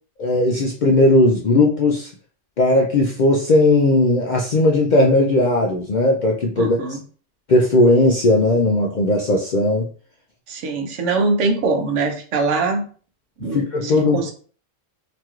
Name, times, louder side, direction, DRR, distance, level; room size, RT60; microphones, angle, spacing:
voice 1, 0.2-2.1 2.6-7.0 7.5-9.9 13.5-14.3, left 2 dB, 60° left, -1 dB, 0.5 m, -17 dB
voice 2, 6.6-7.0 10.5-12.9 13.4-14.3, right 3 dB, 85° right, 5 dB, 1.0 m, -22 dB
3.0 x 3.0 x 2.3 m, 0.42 s
omnidirectional pair, 1.2 m